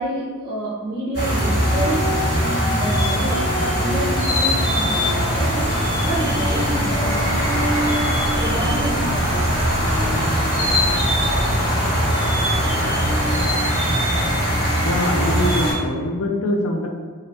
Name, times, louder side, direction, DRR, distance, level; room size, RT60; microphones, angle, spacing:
voice 1, 0.0-2.0 2.3-3.4 3.7-7.3 8.3-9.6, right 1 dB, 15° right, -7 dB, 0.5 m, -28 dB
sound 1, 1.1-15.7, equal, 50° left, 1.5 m, -21 dB
sound 2, 5.2-13.4, equal, 25° left, 0.9 m, -30 dB
voice 2, 14.8-16.9, left 1 dB, 70° left, 1 dB, 0.5 m, -23 dB
2.7 x 2.5 x 3.2 m, 1.5 s
head